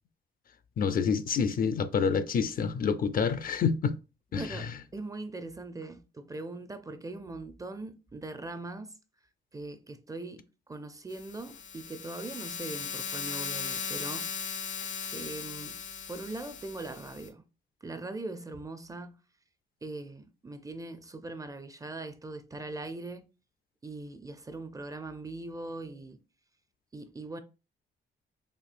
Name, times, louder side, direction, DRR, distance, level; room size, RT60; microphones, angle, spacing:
voice 1, 0.8-4.0 4.3-4.7, left 6 dB, 45° left, 0.4 m, -28 dB
voice 2, 4.4-8.9 9.5-14.3 15.1-15.7 16.1-17.4 17.8-19.2 19.8-23.3 23.8-26.2 26.9-27.4, right 2 dB, 15° right, 0.4 m, -41 dB
sound 1, 11.1-17.3, left 6 dB, 85° left, 0.9 m, -38 dB
4.4 x 2.7 x 2.5 m
cardioid pair, 90°, 20 cm